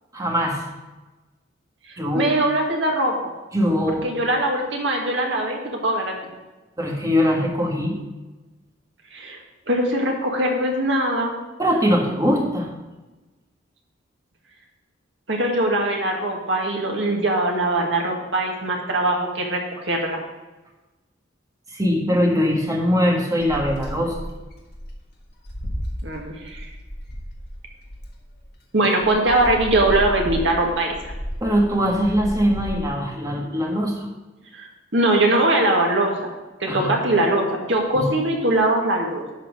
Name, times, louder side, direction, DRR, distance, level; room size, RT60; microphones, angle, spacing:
voice 1, 0.1-0.6 2.0-2.2 3.5-4.0 6.8-8.0 11.6-12.7 21.7-24.1 31.4-34.1 36.7-36.9 37.9-38.1, equal, 15° right, 0 dB, 1.5 m, -21 dB
voice 2, 1.9-3.3 3.9-6.1 9.1-9.4 9.7-11.4 15.3-20.2 26.0-26.7 28.7-30.9 34.5-34.7 34.9-36.3 36.6-39.2, right 1 dB, 65° right, 1 dB, 1.9 m, -21 dB
sound 1, 23.4-28.5 29.0-32.8, equal, 55° left, 1.6 m, -33 dB
11.0 x 4.5 x 6.3 m, 1.1 s
head